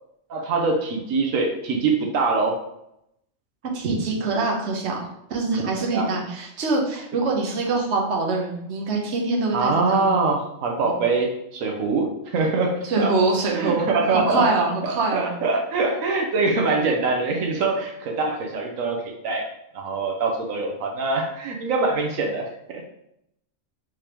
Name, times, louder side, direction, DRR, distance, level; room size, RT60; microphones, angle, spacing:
voice 1, 0.3-2.6 5.9-6.1 9.5-13.1 13.5-14.5 15.1-19.5 19.7-22.8, right 3 dB, 85° right, 1 dB, 1.1 m, -23 dB
voice 2, 3.7-10.1 10.8-11.0 12.8-15.3, right 3 dB, 60° right, -1 dB, 1.2 m, -24 dB
5.0 x 3.6 x 2.9 m, 0.76 s
omnidirectional pair, 1.3 m